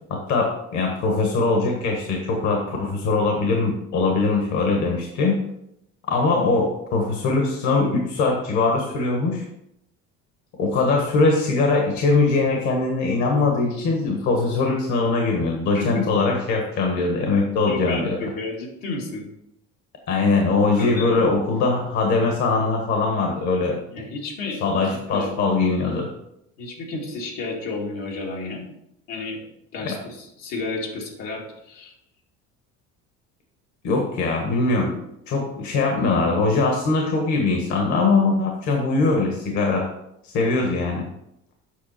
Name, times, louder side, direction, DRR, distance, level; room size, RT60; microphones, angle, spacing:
voice 1, 0.1-5.4 6.1-9.5 10.6-18.3 20.1-23.8 24.6-26.1 29.8-30.0 33.8-39.9 40.2-41.1, left 3 dB, 60° left, 1 dB, 1.7 m, -21 dB
voice 2, 15.7-16.1 17.7-19.3 20.8-21.1 23.9-24.6 25.1-25.3 26.6-28.6 29.1-29.4 29.7-31.9, left 3 dB, 80° left, -1 dB, 2.3 m, -31 dB
8.3 x 5.9 x 4.4 m, 0.79 s
cardioid pair, 140°, 32 cm